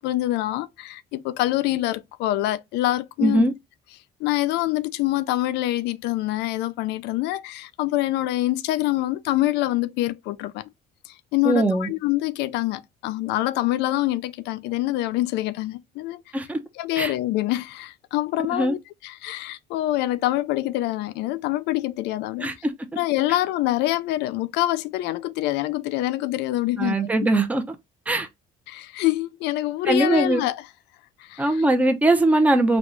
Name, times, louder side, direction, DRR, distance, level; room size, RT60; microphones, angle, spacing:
voice 1, 0.0-3.4 4.2-10.6 11.1-16.2 16.8-22.5 23.0-27.0 28.7-30.6 31.2-31.6, left 16 dB, 85° left, 0.4 m, -25 dB
voice 2, 3.2-3.5 11.4-11.9 16.3-16.6 17.0-17.1 18.5-18.7 22.4-22.7 26.8-27.8 28.1-28.3 29.9-30.4 31.4-32.8, right 2 dB, 10° right, 0.7 m, -21 dB
4.1 x 2.3 x 3.0 m
cardioid pair, 110°, 17 cm